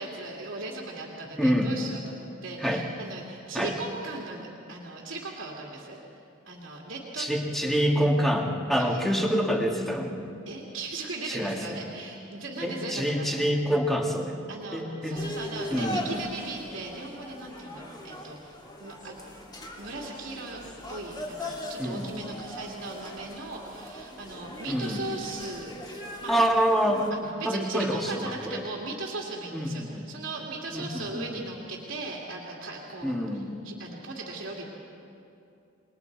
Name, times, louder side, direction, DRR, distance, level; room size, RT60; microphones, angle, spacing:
voice 1, 0.0-6.0 6.5-7.3 8.8-9.0 10.5-13.3 14.5-19.1 19.8-20.6 20.9-26.3 26.9-33.1 33.6-34.7, right 2 dB, 75° right, -3 dB, 2.6 m, -38 dB
voice 2, 1.3-1.7 2.6-2.8 3.5-3.7 7.2-10.1 11.3-11.8 12.6-14.4 14.7-15.2 15.7-16.0 21.8-22.1 24.7-25.0 26.3-27.0 27.5-28.6 29.5-30.1 30.7-31.4 33.0-33.5, equal, ahead, 0 dB, 1.9 m, -26 dB
sound 1, 15.1-27.1, left 1 dB, 20° left, 2.2 m, -40 dB
29.0 x 21.0 x 4.7 m, 2.6 s
head